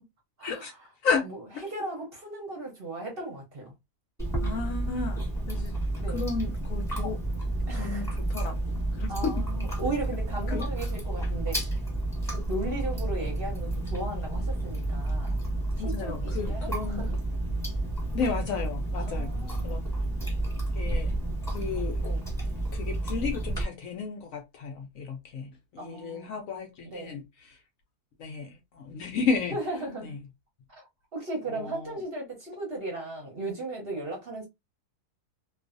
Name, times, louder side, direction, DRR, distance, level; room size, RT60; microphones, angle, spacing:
voice 1, 0.4-0.8 1.2-3.7 6.0-6.3 7.7-8.1 9.1-11.7 12.3-15.3 15.8-17.2 19.0-19.8 20.8-21.0 22.0-22.3 25.8-26.4 26.8-27.2 29.5-30.2 30.7-30.8 31.1-34.5, right 2 dB, 45° right, 0.8 m, -36 dB
Chewing mastication, 4.2-23.6, right 1 dB, ahead, 1.1 m, -30 dB
voice 2, 4.4-5.2 5.5-5.7 6.1-7.2 7.7-9.3 10.5-10.7 15.8-17.1 18.1-19.8 20.7-21.1 21.5-22.1 22.7-27.2 28.2-29.5 31.5-31.9, left 5 dB, 70° left, 0.8 m, -33 dB
2.5 x 2.3 x 2.5 m
omnidirectional pair, 1.7 m